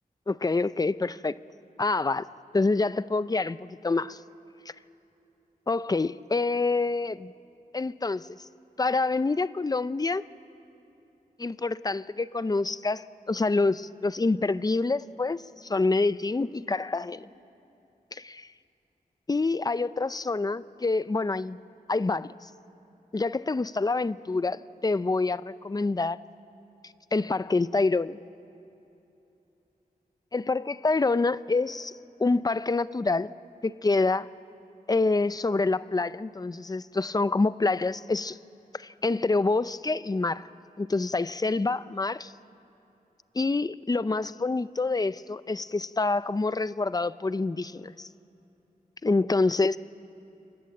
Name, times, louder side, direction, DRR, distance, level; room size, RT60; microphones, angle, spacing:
voice 1, 0.3-1.3 1.8-2.2 2.5-4.2 5.7-7.3 7.7-8.3 8.8-10.2 11.4-17.3 18.1-18.4 19.3-21.6 21.9-22.4 23.1-26.2 27.1-28.2 30.3-33.3 33.6-34.3 34.9-38.4 38.7-40.5 40.8-42.3 43.4-48.1 49.0-49.8, left 3 dB, 25° left, 16 dB, 0.5 m, -27 dB
27.5 x 24.0 x 7.7 m, 2.9 s
wide cardioid pair, 95°, 15 cm